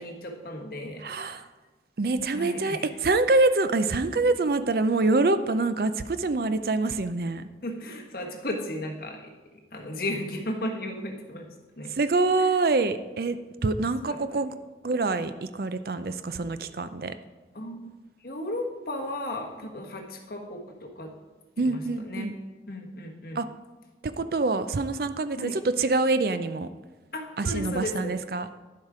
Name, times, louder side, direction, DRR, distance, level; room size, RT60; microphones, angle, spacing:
voice 1, 0.0-1.0 2.3-2.9 7.6-9.3 9.7-11.5 11.8-11.9 12.4-12.5 13.8-14.2 17.5-17.9 18.2-21.1 21.6-22.3 22.7-23.4 25.4-25.6 27.1-28.1, left 1 dB, 55° left, 1 dB, 1.3 m, -35 dB
voice 2, 1.0-1.5 2.0-7.5 11.9-13.4 13.6-14.5 14.8-17.1 21.6-22.3 23.4-23.5 24.0-26.7 27.4-28.5, right 3 dB, 55° right, 12 dB, 0.5 m, -25 dB
10.5 x 7.3 x 4.9 m, 1.2 s
head